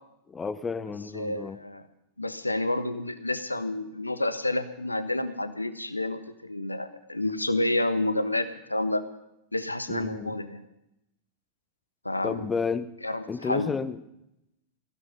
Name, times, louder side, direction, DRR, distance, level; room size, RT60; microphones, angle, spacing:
voice 1, 0.3-1.6 9.9-10.4 12.2-12.9 13.3-14.0, left 5 dB, 15° left, 13 dB, 1.0 m, -31 dB
voice 2, 1.1-1.8 2.2-9.0 9.5-10.6 12.0-12.5 13.0-13.7, left 2 dB, 85° left, 11 dB, 1.2 m, -29 dB
17.0 x 15.5 x 5.3 m, 0.82 s
figure-of-eight pair, 90°, 0 cm